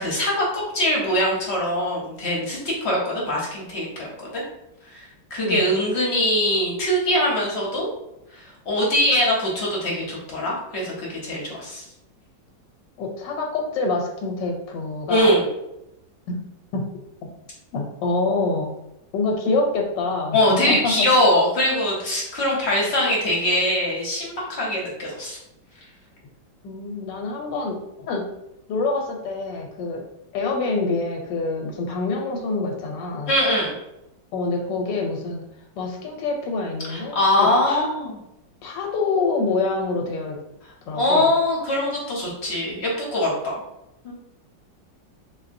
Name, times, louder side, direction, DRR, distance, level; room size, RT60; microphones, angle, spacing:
voice 1, 0.0-4.4 4.9-7.9 8.3-11.8 15.1-15.4 20.3-25.4 33.3-33.7 36.9-38.2 40.9-43.5 44.0-44.1, left 1 dB, 50° left, -3 dB, 0.8 m, -22 dB
voice 2, 13.0-15.3 16.3-16.4 16.7-16.9 17.2-17.3 17.7-18.8 19.1-21.1 26.6-28.2 28.7-30.0 30.3-33.3 34.3-35.4 35.8-37.9 38.6-40.4 40.9-41.3, left 3 dB, 85° left, 2 dB, 1.3 m, -26 dB
3.5 x 2.7 x 2.6 m, 0.86 s
omnidirectional pair, 1.9 m